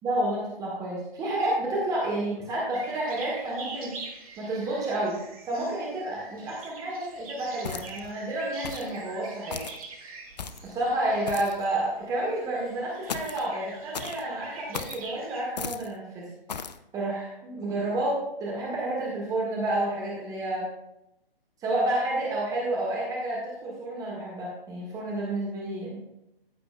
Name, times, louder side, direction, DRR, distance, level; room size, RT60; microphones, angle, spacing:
voice 1, 0.0-3.9 4.4-9.6 10.6-16.3 16.9-20.7 21.6-26.0, right 1 dB, 10° right, -4 dB, 1.6 m, -30 dB
sound 1, 2.7-15.4, right 3 dB, 35° right, 2.2 m, -44 dB
sound 2, 7.6-8.1 8.6-9.0 9.5-9.8 10.4-10.7 11.3-11.6 13.1-13.5 13.9-14.2 14.7-15.0 15.6-15.9 16.5-16.8, left 6 dB, 45° left, 0.6 m, -36 dB
14.5 x 7.7 x 2.3 m, 0.88 s
figure-of-eight pair, 135°, 29 cm